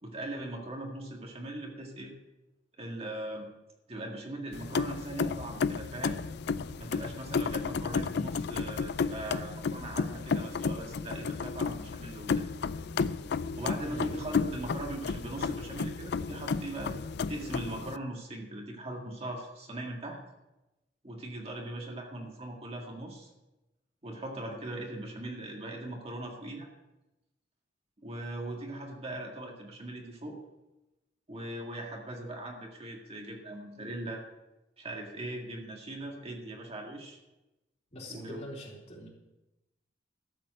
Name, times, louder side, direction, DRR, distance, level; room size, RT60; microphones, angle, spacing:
voice 1, 0.0-2.1 2.8-3.5 3.9-6.2 6.8-12.5 13.5-16.9 17.3-20.2 21.0-23.3 24.0-26.7 28.0-30.4 31.3-34.2 34.8-37.2 38.1-38.5, right 1 dB, 35° right, 0 dB, 2.0 m, -40 dB
sound 1, 4.5-18.0, left 5 dB, 65° left, 0.4 m, -33 dB
voice 2, 37.9-39.1, left 1 dB, 40° left, -3 dB, 3.8 m, -43 dB
13.0 x 7.6 x 7.7 m, 0.99 s
head